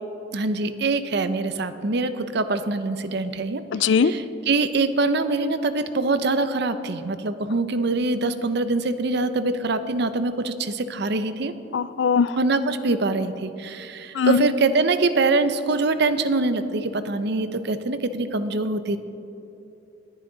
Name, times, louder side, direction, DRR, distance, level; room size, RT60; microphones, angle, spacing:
voice 1, 0.3-3.6 4.0-11.5 12.4-19.0, right 3 dB, 65° right, 11 dB, 0.7 m, -24 dB
voice 2, 3.7-4.1 11.7-12.3 14.2-14.4, left 6 dB, 75° left, 16 dB, 0.4 m, -20 dB
20.0 x 10.5 x 4.0 m, 2.8 s
head